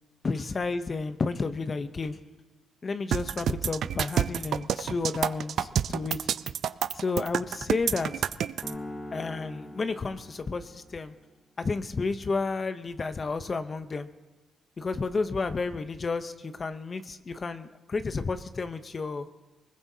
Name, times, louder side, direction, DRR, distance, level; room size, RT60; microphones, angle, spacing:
voice 1, 0.2-2.2 2.8-6.3 7.0-8.3 9.1-11.1 11.6-14.1 14.8-19.3, left 4 dB, 35° left, 10 dB, 0.7 m, -31 dB
sound 1, 3.1-8.7, right 9 dB, 65° right, 0.4 m, -28 dB
sound 2, 8.6-11.0, left 1 dB, 20° left, 3.4 m, -42 dB
21.0 x 20.0 x 2.8 m, 1.2 s
cardioid pair, 90°, 0 cm